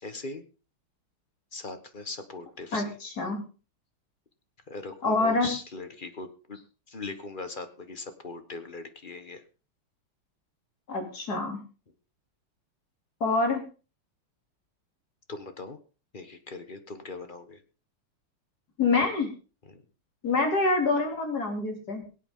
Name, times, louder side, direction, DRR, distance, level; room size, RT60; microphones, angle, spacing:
voice 1, 0.0-0.4 1.5-3.0 4.7-6.6 6.9-9.4 15.3-15.8 16.1-17.6 19.7-19.8, left 3 dB, 30° left, 8 dB, 1.2 m, -40 dB
voice 2, 2.7-3.4 5.0-5.5 10.9-11.6 13.2-13.6 18.8-19.3 20.2-22.0, left 3 dB, 45° left, 3 dB, 3.6 m, -26 dB
22.5 x 8.4 x 3.8 m, 0.35 s
omnidirectional pair, 2.4 m